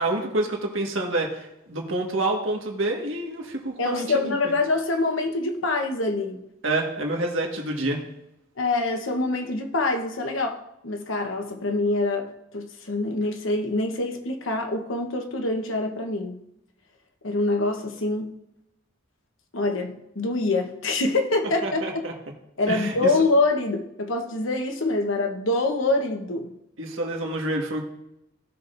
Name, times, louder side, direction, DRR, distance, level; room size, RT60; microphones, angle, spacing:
voice 1, 0.0-4.5 6.6-8.0 21.6-22.1 22.7-23.1 26.8-27.8, right 2 dB, 80° right, 1 dB, 1.7 m, -28 dB
voice 2, 3.8-6.4 8.6-10.6 10.8-16.4 17.2-18.3 19.5-22.0 22.6-26.5, left 2 dB, 85° left, 5 dB, 1.1 m, -25 dB
17.0 x 6.1 x 2.6 m, 0.84 s
head